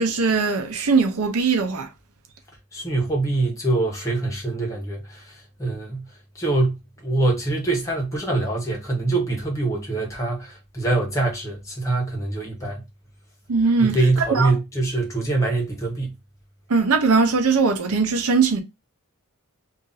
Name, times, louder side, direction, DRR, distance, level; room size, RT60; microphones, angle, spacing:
voice 1, 0.0-1.9 13.5-14.5 16.7-18.6, right 4 dB, 85° right, 0.7 m, -20 dB
voice 2, 2.7-6.1 6.3-12.8 13.8-16.1, right 2 dB, 15° left, 1.0 m, -24 dB
2.7 x 2.5 x 3.8 m
head